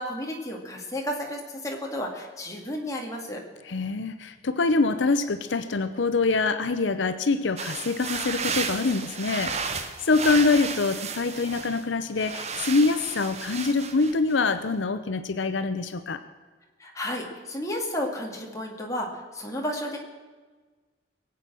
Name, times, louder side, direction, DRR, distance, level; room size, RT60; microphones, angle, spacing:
voice 1, 0.0-3.4 16.8-20.0, left 1 dB, 15° left, 0 dB, 2.2 m, -32 dB
voice 2, 3.6-16.2, left 3 dB, 80° left, 11 dB, 0.7 m, -25 dB
sound 1, 7.6-11.8 12.1-14.3, right 5 dB, 35° right, 0.9 m, -33 dB
22.5 x 8.4 x 6.2 m, 1.4 s
head